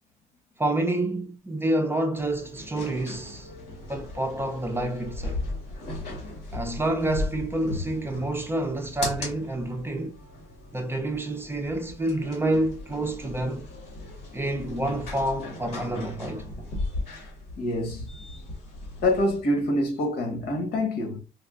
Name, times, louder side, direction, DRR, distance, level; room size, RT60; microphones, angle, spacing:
voice 1, 0.6-3.5 3.9-5.4 6.5-10.2 10.7-13.7 14.3-16.4, right 1 dB, 15° right, 0.5 m, -28 dB
sound 1, 2.1-19.4, left 2 dB, 90° left, 1.6 m, -37 dB
voice 2, 17.6-18.1 19.0-21.2, left 1 dB, 70° left, 1.2 m, -26 dB
4.6 x 2.3 x 2.4 m
cardioid pair, 110°, 17 cm